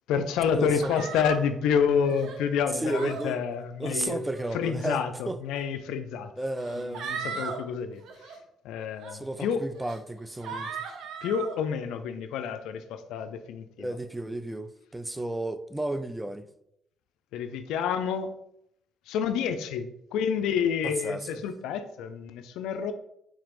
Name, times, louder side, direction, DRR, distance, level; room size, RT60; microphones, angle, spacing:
voice 1, 0.1-4.2 4.5-6.3 6.7-8.0 8.6-9.7 10.5-10.6 11.2-14.0 17.3-18.3 19.1-22.9, left 7 dB, 85° left, 0.3 m, -29 dB
sound 1, 0.8-1.4 2.0-2.4 2.8-3.2 4.1-4.5 5.6-5.7 6.6-7.6 8.0-8.4 9.0-9.1 9.7-10.0 10.4-11.6, right 6 dB, 70° right, 0.6 m, -37 dB
voice 2, 2.7-3.4 3.8-5.0 5.3-5.4 6.4-7.4 9.1-10.7 13.8-16.4 20.8-21.3, right 1 dB, 10° right, 0.3 m, -33 dB
3.9 x 2.9 x 3.0 m
supercardioid pair, 65°, 0 cm